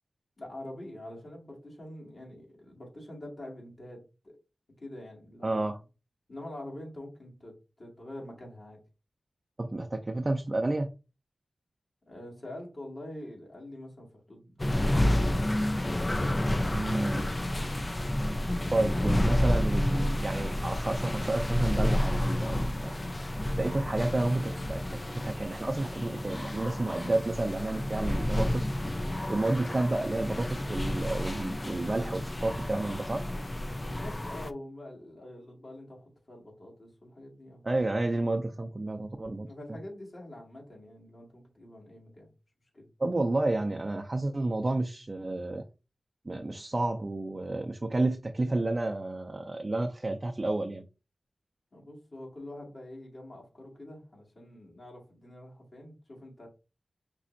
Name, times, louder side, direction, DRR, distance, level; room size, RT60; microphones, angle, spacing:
voice 1, 0.4-4.4 4.8-5.7 6.3-8.8 12.1-15.6 33.7-37.6 39.4-42.3 42.7-42.9 51.7-56.5, left 1 dB, 55° left, 2.0 m, -45 dB
voice 2, 5.4-5.8 9.6-10.9 16.7-17.3 18.7-23.0 23.6-28.8 29.3-33.2 37.6-39.5 43.0-45.6 46.3-50.8, right 2 dB, 40° right, 0.5 m, -30 dB
sound 1, 14.6-34.5, left 1 dB, 30° left, 0.3 m, -30 dB
5.2 x 3.1 x 2.5 m
cardioid pair, 45°, 0 cm